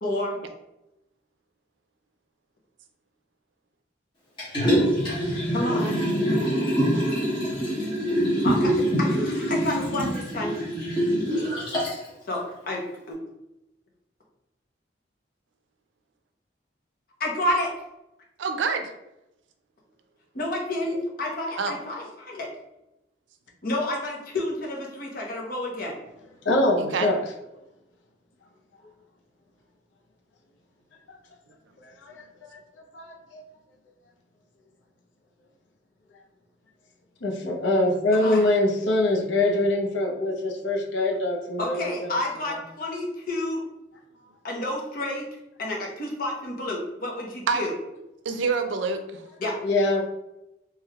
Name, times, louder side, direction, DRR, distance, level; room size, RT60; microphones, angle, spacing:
voice 1, 0.0-0.3 5.5-6.0 8.4-10.5 12.2-13.2 17.2-17.7 20.3-22.5 23.6-26.0 38.1-38.5 41.6-43.6 44.4-45.3 45.6-47.7 49.4-49.5, left 1 dB, 50° left, -2 dB, 0.8 m, -30 dB
Liquid, 4.4-12.1 12.5-12.6, equal, 25° left, 1.1 m, -24 dB
voice 2, 18.4-18.9 21.6-21.8 26.8-27.1 47.5-47.7 48.3-49.2, right 4 dB, 85° right, 7 dB, 0.4 m, -26 dB
voice 3, 26.4-27.2 31.8-32.1 32.4-32.6 32.9-33.4 37.2-42.1 49.6-50.0, left 2 dB, 90° left, 1 dB, 0.6 m, -24 dB
3.2 x 3.0 x 2.3 m, 0.91 s
head